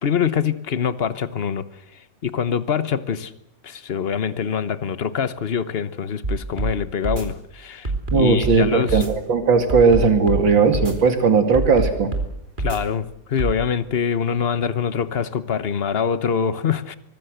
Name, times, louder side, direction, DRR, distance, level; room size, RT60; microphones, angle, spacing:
voice 1, 0.0-1.7 1.9-3.3 3.6-9.0 12.6-16.9, left 7 dB, 40° left, 1.0 m, -24 dB
sound 1, 6.2-6.7 7.0-7.2 7.8-8.6 8.9-9.1 9.7-10.4 10.7-10.9 11.5-12.3 12.6-12.8 13.4-13.5, right 3 dB, 25° right, 3.3 m, -25 dB
voice 2, 8.1-12.1, right 4 dB, 90° right, 3.1 m, -17 dB
24.5 x 19.0 x 7.9 m
omnidirectional pair, 2.0 m